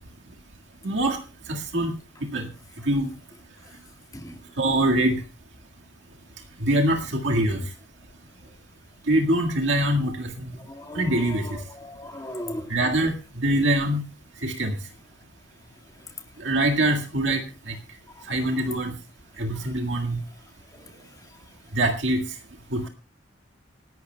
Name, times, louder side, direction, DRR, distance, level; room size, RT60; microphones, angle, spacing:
voice 1, 0.8-1.2 1.5-1.9 2.3-2.5 2.8-3.1 4.6-5.2 6.6-7.6 9.1-10.6 10.9-11.6 12.7-14.0 14.4-14.8 16.4-17.4 17.7-17.8 18.3-18.9 19.4-20.2 21.7-22.2 22.7-22.9, right 1 dB, 75° right, 1.9 m, -23 dB
voice 2, 10.7-12.7 18.2-18.3, left 1 dB, 20° left, 2.0 m, -37 dB
27.0 x 12.0 x 2.3 m
head